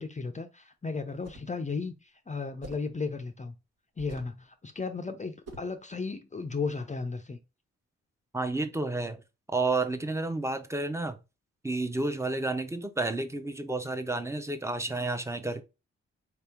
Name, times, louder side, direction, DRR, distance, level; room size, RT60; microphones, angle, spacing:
voice 1, 0.0-3.5 4.0-7.4, left 4 dB, 25° left, 0.6 m, -35 dB
sound 1, 1.1-1.6 2.6-3.0 4.0-4.4 5.5-5.8, right 2 dB, 55° right, 1.2 m, -47 dB
voice 2, 8.3-9.2 9.5-11.2 11.6-15.6, right 2 dB, 10° right, 0.7 m, -31 dB
4.2 x 2.8 x 3.5 m
cardioid pair, 60°, 29 cm